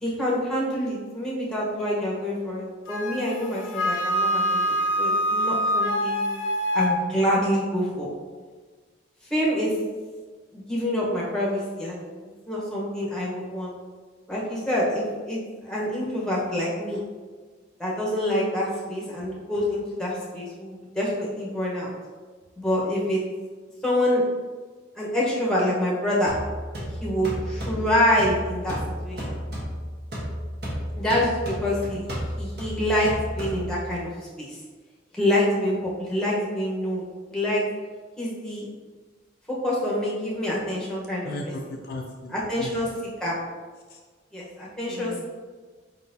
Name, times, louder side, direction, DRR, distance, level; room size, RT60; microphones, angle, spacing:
voice 1, 0.0-6.2 6.7-8.1 9.3-9.7 10.5-12.1 12.5-13.7 14.3-17.0 17.8-21.9 22.6-23.2 23.8-24.2 25.0-26.3 27.0-28.8 29.0-29.4 30.9-32.1 32.4-34.1 34.4-34.6 35.1-37.0 37.3-37.6 38.2-38.7 39.5-41.3 42.3-42.9 43.2-43.4 44.3-45.1, left 1 dB, 5° left, -5 dB, 1.0 m, -26 dB
Wind instrument woodwind instrument, 2.9-7.0, equal, 85° left, 0.8 m, -25 dB
sound 1, 26.3-34.0, equal, 55° right, 1.3 m, -33 dB
voice 2, 41.2-42.9 43.9-44.0 44.9-45.2, left 1 dB, 50° left, 0 dB, 0.4 m, -36 dB
4.9 x 3.8 x 2.7 m, 1.4 s
head